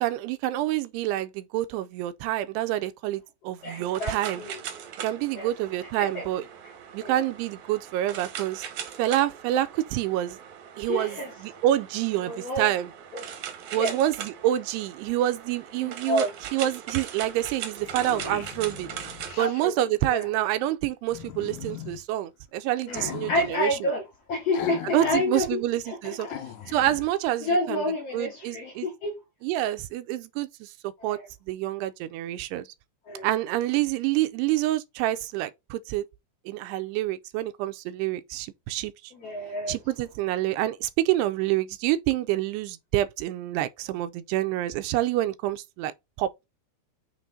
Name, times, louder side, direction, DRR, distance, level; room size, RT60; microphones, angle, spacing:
voice 1, 0.0-4.4 5.0-6.4 6.9-8.6 9.0-10.4 10.8-12.9 13.7-18.9 19.4-23.9 24.9-26.3 26.7-27.8 28.1-28.9 29.4-31.2 31.5-32.7 33.2-36.0 36.5-39.1 39.7-45.9 46.2-46.5, right 14 dB, 90° right, 2.7 m, -27 dB
voice 2, 3.6-4.6 5.3-5.5 6.0-6.2 7.0-7.2 10.9-11.3 12.2-12.7 13.1-13.3 13.7-13.9 15.8-16.3 19.4-20.3 22.9-25.6 25.9-26.4 26.6-26.8 27.4-29.1 31.0-31.3 33.1-33.3 39.1-39.8, left 1 dB, 55° left, 1.8 m, -30 dB
sound 1, 3.6-19.4, right 8 dB, 70° right, 1.8 m, -40 dB
sound 2, 17.2-17.3 17.6-19.6 21.1-22.0 22.8-23.6 24.5-25.3 25.6-25.7 26.2-27.1, left 10 dB, 75° left, 1.7 m, -38 dB
7.6 x 3.3 x 3.7 m
omnidirectional pair, 4.7 m